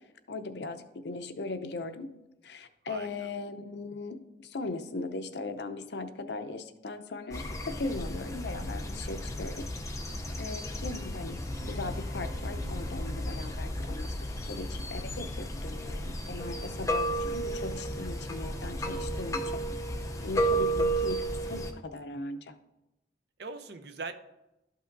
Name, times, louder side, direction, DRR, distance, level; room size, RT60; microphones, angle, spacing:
voice 1, 0.3-2.1 2.4-9.8 10.4-11.4 11.7-14.1 14.5-19.6 20.2-22.5, left 3 dB, 75° left, 9 dB, 0.6 m, -38 dB
voice 2, 2.9-3.3 10.1-10.5 20.2-20.5 23.4-24.1, right 3 dB, 70° right, 8 dB, 0.7 m, -43 dB
sound 1, 7.3-21.7, right 1 dB, 15° left, 0.6 m, -33 dB
sound 2, 11.3-13.9, left 1 dB, ahead, 2.8 m, -46 dB
12.5 x 5.5 x 2.6 m, 0.95 s
head